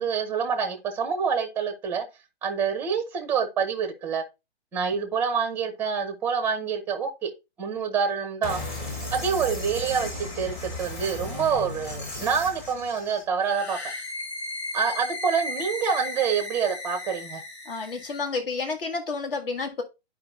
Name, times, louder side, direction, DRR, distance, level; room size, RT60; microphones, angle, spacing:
voice 1, 0.0-2.0 2.4-4.2 4.7-7.3 7.6-8.6 9.1-13.8 14.7-17.4, right 6 dB, 5° right, 0.6 m, -27 dB
sound 1, 8.4-13.2, left 2 dB, 20° left, 1.6 m, -35 dB
sound 2, 13.4-18.3, left 2 dB, 75° left, 2.1 m, -36 dB
voice 2, 17.7-19.8, left 4 dB, 55° left, 1.8 m, -30 dB
11.5 x 4.9 x 2.4 m
hypercardioid pair, 150°, 32 cm